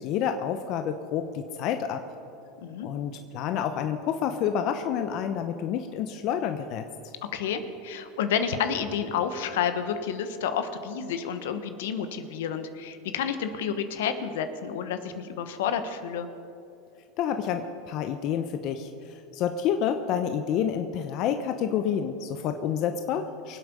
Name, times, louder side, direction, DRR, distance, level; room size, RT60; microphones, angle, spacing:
voice 1, 0.0-2.0 2.8-6.8 17.2-23.6, left 8 dB, 55° left, 8 dB, 0.8 m, -29 dB
voice 2, 7.3-16.3, left 7 dB, 75° left, 9 dB, 1.2 m, -30 dB
24.0 x 8.1 x 5.4 m, 2.7 s
hypercardioid pair, 105°, 0 cm